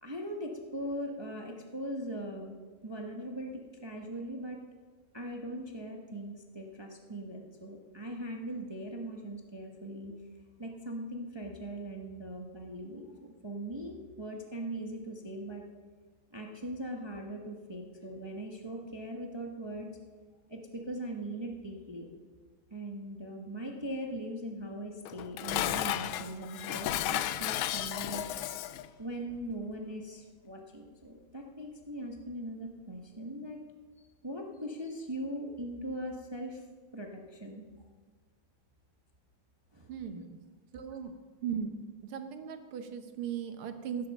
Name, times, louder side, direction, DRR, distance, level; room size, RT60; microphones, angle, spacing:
voice 1, 0.0-2.6 2.8-4.6 5.1-10.1 10.6-13.1 13.4-15.6 16.3-20.0 20.5-22.1 22.7-28.2 29.0-33.6 34.2-36.6 36.9-37.6 39.7-39.9 40.2-40.3, right 1 dB, 20° right, 1 dB, 0.7 m, -40 dB
Dishes pots and pans, 25.0-28.9, left 13 dB, 75° left, 1.3 m, -33 dB
voice 2, 39.9-40.4 40.7-41.1 41.4-41.7 42.0-44.1, right 8 dB, 80° right, 8 dB, 1.9 m, -37 dB
15.5 x 7.7 x 6.5 m, 1.5 s
omnidirectional pair, 2.4 m